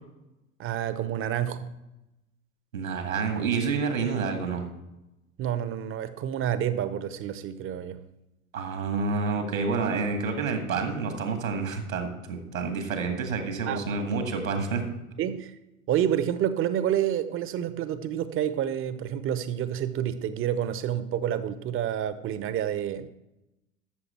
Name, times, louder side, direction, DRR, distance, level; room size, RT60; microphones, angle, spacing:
voice 1, 0.6-1.7 5.4-8.0 13.7-14.0 15.2-15.5 15.9-23.1, right 10 dB, 30° right, 0.8 m, -29 dB
voice 2, 2.7-4.7 8.5-14.8, right 4 dB, 80° right, 2.0 m, -28 dB
13.0 x 6.8 x 4.4 m
figure-of-eight pair, 80°, 40 cm